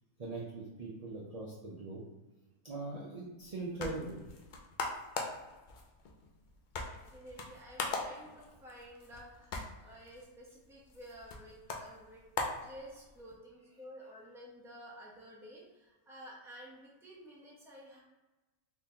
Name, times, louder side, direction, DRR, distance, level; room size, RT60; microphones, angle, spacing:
voice 1, 0.2-2.0 2.6-4.2, right 2 dB, 50° right, -5 dB, 0.4 m, -41 dB
sound 1, 3.4-13.4, left 3 dB, 85° left, 0.4 m, -42 dB
voice 2, 6.8-12.3 12.6-18.0, equal, 5° right, -5 dB, 0.6 m, -52 dB
3.7 x 2.9 x 2.8 m, 1.1 s
omnidirectional pair, 1.5 m